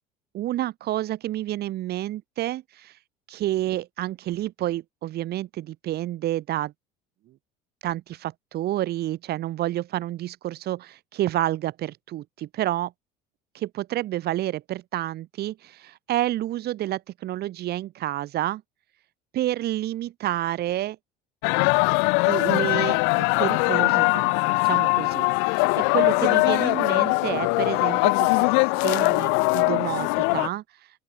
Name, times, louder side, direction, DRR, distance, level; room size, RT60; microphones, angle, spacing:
voice 1, 0.3-3.0 3.3-6.7 7.8-12.9 13.5-18.6 19.3-21.0 22.2-30.6, right 14 dB, 55° right, 2.5 m, -29 dB
sound 1, 21.4-30.5, left 39 dB, 75° left, 0.6 m, -21 dB
open air
supercardioid pair, 90°, 19 cm